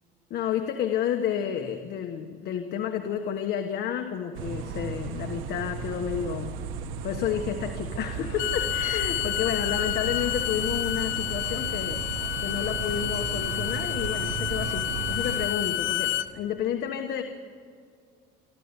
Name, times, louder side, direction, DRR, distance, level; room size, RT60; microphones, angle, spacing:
voice 1, 0.3-6.5 7.0-12.0 12.4-17.2, left 9 dB, 55° left, 5 dB, 1.4 m, -30 dB
sound 1, 4.3-15.5, right 6 dB, 85° right, 1.6 m, -35 dB
Bowed string instrument, 8.2-16.3, left 14 dB, 80° left, 1.1 m, -30 dB
25.0 x 14.0 x 9.8 m, 2.1 s
cardioid pair, 150°, 20 cm